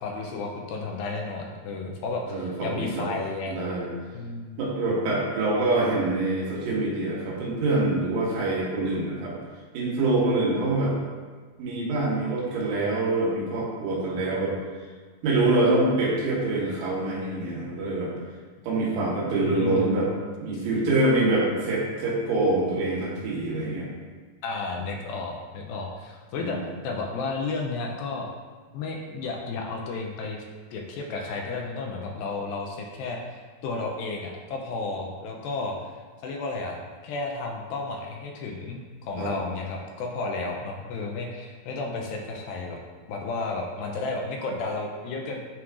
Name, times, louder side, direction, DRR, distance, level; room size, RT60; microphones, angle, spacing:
voice 1, 0.0-3.6 4.1-4.6 18.9-19.9 20.5-20.6 24.4-26.6 26.8-28.3 28.7-30.4 30.7-35.9 36.2-42.8 43.1-45.4, left 3 dB, 80° left, 0 dB, 2.1 m, -32 dB
voice 2, 2.3-3.1 3.5-3.9 4.6-9.3 9.7-10.9 11.6-14.6 15.2-18.1 18.6-20.1 20.4-23.9 26.4-26.6 39.2-39.3, right 2 dB, 90° right, -5 dB, 3.4 m, -25 dB
9.5 x 4.5 x 2.5 m, 1.5 s
omnidirectional pair, 4.6 m